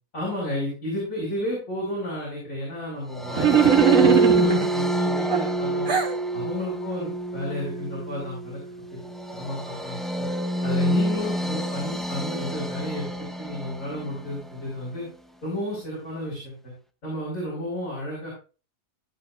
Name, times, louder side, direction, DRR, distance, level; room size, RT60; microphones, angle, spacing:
voice 1, 0.1-5.9 6.3-8.6 9.3-10.3 10.6-13.1 13.4-15.1 15.4-16.5 17.0-18.3, left 1 dB, 70° left, -7 dB, 6.2 m, -32 dB
sound 1, 3.1-14.5, right 2 dB, ahead, 0.6 m, -27 dB
sound 2, 3.3-4.7 5.3-6.2, right 7 dB, 75° right, 1.6 m, -20 dB
15.5 x 7.9 x 2.5 m, 0.35 s
omnidirectional pair, 1.4 m